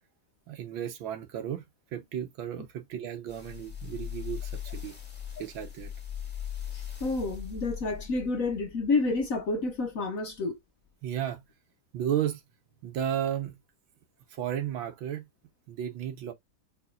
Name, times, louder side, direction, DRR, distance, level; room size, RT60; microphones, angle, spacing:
voice 1, 0.5-1.6 1.9-4.9 5.4-5.9 11.0-11.4 11.9-12.4 12.8-13.6 14.3-15.2 15.7-16.3, right 10 dB, 85° right, 1.7 m, -33 dB
sound 1, 3.3-9.8 10.3-10.4, left 9 dB, 5° left, 1.4 m, -40 dB
voice 2, 6.7-10.6, left 3 dB, 60° left, 0.9 m, -29 dB
5.9 x 3.4 x 2.4 m
omnidirectional pair, 2.1 m